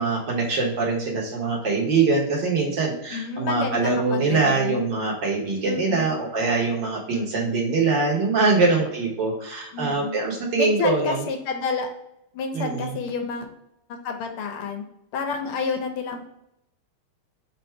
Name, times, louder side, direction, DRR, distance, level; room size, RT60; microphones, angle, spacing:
voice 1, 0.0-11.2 12.5-12.9, right 3 dB, 65° right, -2 dB, 1.7 m, -23 dB
voice 2, 3.1-4.9 5.6-6.2 7.1-7.6 8.6-8.7 9.7-10.2 10.6-11.9 12.3-13.5 14.0-14.8 15.1-16.2, left 5 dB, 90° left, 4 dB, 1.7 m, -30 dB
4.4 x 2.6 x 4.4 m, 0.80 s
omnidirectional pair, 2.3 m